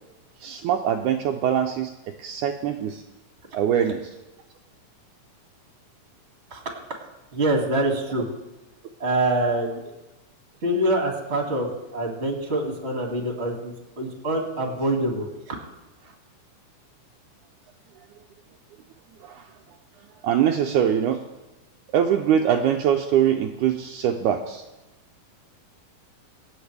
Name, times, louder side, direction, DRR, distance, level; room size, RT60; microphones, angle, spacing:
voice 1, 0.4-1.9 2.2-3.0 3.5-4.0 19.2-19.4 20.2-21.2 21.9-24.6, right 9 dB, 80° right, 4 dB, 2.0 m, -23 dB
voice 2, 7.3-8.3 9.0-9.9 10.6-15.6, right 1 dB, 25° right, 0 dB, 2.0 m, -25 dB
25.0 x 8.7 x 3.4 m, 1.0 s
omnidirectional pair, 3.8 m